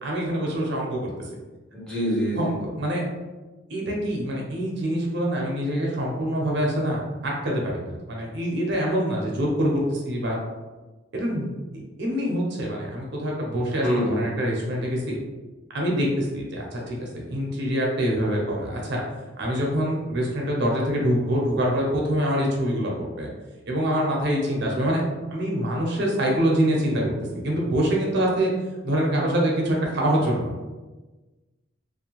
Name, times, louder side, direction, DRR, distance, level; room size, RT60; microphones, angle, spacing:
voice 1, 0.0-1.3 2.4-3.0 3.7-10.4 11.1-11.5 12.0-15.2 15.7-19.0 19.4-23.3 23.7-25.0 25.3-27.1 27.4-28.5 28.8-30.5, equal, 60° right, -2 dB, 0.6 m, -25 dB
voice 2, 1.7-2.6 13.8-14.3, equal, 5° left, -7 dB, 0.7 m, -25 dB
2.5 x 2.1 x 2.9 m, 1.2 s
head